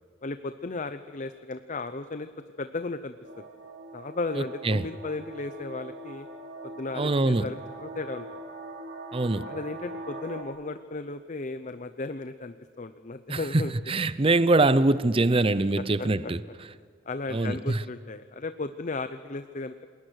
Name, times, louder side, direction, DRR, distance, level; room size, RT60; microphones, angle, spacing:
voice 1, 0.2-2.3 2.6-3.4 3.9-6.3 6.6-8.2 9.4-13.7 16.2-16.3 17.1-19.8, left 3 dB, 40° left, 0.7 m, -35 dB
sound 1, 3.2-10.4, right 2 dB, 90° right, 3.1 m, -42 dB
voice 2, 7.0-7.5 9.1-9.5 13.3-16.4 17.3-17.8, right 2 dB, 30° right, 0.6 m, -23 dB
28.5 x 21.0 x 6.4 m
head